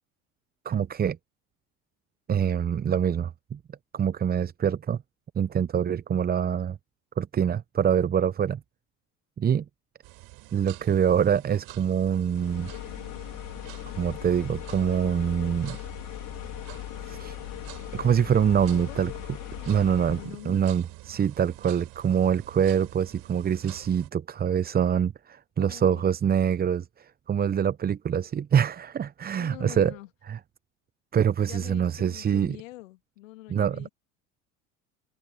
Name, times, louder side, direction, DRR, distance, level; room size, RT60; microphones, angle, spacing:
voice 1, 0.6-1.2 2.3-3.6 3.9-5.0 5.4-6.8 7.2-8.6 9.4-9.6 10.5-12.7 14.0-15.8 17.0-17.4 17.9-19.1 19.7-20.2 20.4-29.9 30.3-30.4 31.1-32.6 33.5-33.8, right 8 dB, 25° right, 0.8 m, -25 dB
sound 1, 10.0-24.1, right 23 dB, 55° right, 4.7 m, -47 dB
sound 2, 12.3-20.4, left 17 dB, 50° left, 4.6 m, -39 dB
voice 2, 18.7-19.0 20.2-20.6 25.6-26.0 29.4-30.1 31.4-33.9, left 18 dB, 70° left, 2.4 m, -44 dB
figure-of-eight pair, 70°, 41 cm